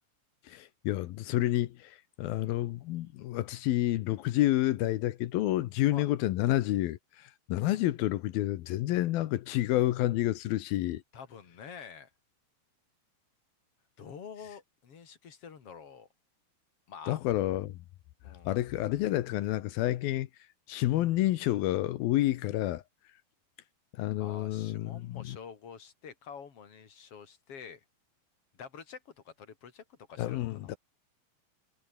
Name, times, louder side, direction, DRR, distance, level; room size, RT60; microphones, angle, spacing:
voice 1, 0.5-11.0 17.1-17.8 18.5-20.3 20.7-22.8 24.0-25.4 30.2-30.8, left 15 dB, 75° left, 2.4 m, -29 dB
voice 2, 11.1-12.1 14.0-16.1 16.9-17.3 18.2-18.5 24.2-27.8 28.5-30.8, left 6 dB, 40° left, 2.9 m, -47 dB
omnidirectional pair, 5.0 m